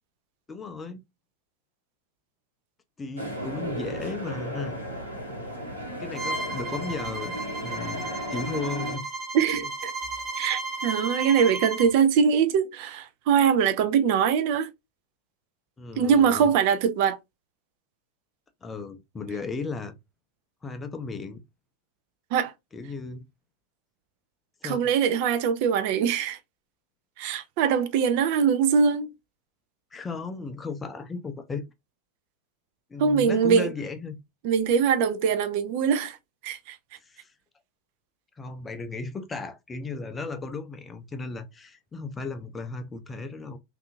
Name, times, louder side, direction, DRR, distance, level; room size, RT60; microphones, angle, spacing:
voice 1, 0.5-1.0 3.0-4.8 6.0-9.0 15.8-16.5 18.6-19.9 20.6-21.4 22.7-23.3 24.6-24.9 29.9-31.6 32.9-34.2 37.0-37.3 38.4-43.6, left 4 dB, 15° left, 0.5 m, -35 dB
sound 1, 3.2-9.0, equal, 85° right, 1.0 m, -35 dB
Bowed string instrument, 6.2-11.9, right 2 dB, 25° right, 0.9 m, -34 dB
voice 2, 9.3-9.9 10.4-14.7 16.0-17.2 22.3-22.5 24.6-26.4 27.2-29.1 33.0-33.7 34.4-36.2 36.4-36.8, right 7 dB, 45° right, 0.4 m, -22 dB
2.6 x 2.4 x 2.5 m
figure-of-eight pair, 90°, 0 cm